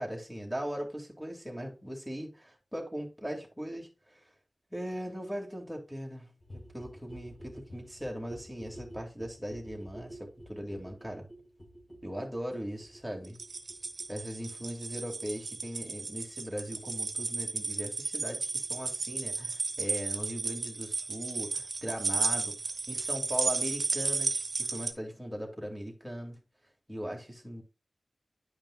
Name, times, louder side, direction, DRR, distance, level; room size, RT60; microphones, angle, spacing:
voice 1, 0.0-4.3 4.7-11.3 12.0-13.4 14.1-22.6 22.9-26.4 26.9-27.6, equal, ahead, 2.3 m, -39 dB
sound 1, 6.4-17.9 18.2-18.3 18.5-18.6 18.8-18.9 19.1-19.2 19.4-19.5 19.7-19.8, equal, 35° left, 2.5 m, -51 dB
sound 2, 13.2-24.9, right 4 dB, 80° right, 0.9 m, -34 dB
9.7 x 5.2 x 2.4 m
wide cardioid pair, 80°, 0 cm